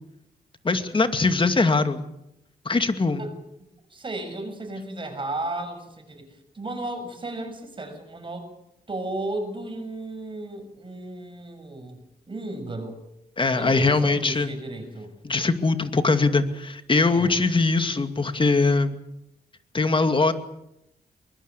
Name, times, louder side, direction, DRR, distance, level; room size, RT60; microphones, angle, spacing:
voice 1, 0.6-2.0 2.6-3.2 13.4-14.5 15.2-19.0 19.7-20.3, left 3 dB, 35° left, 8 dB, 2.3 m, -21 dB
voice 2, 3.9-8.5 8.9-12.0 12.3-13.0 13.5-15.1 17.1-17.3, right 2 dB, 35° right, 6 dB, 7.0 m, -34 dB
23.0 x 21.0 x 8.3 m, 0.83 s
cardioid pair, 90°, 16 cm